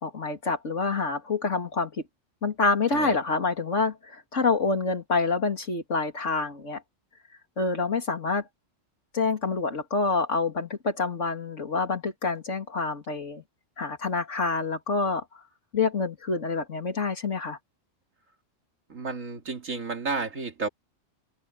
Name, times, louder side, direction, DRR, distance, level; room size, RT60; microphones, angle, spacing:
voice 1, 0.0-1.9 2.4-6.8 7.6-8.5 9.1-13.4 13.8-15.2 15.7-17.6, left 4 dB, 70° left, 3.0 m, -27 dB
voice 2, 18.9-20.7, right 4 dB, 85° right, 2.9 m, -32 dB
omnidirectional pair, 1.3 m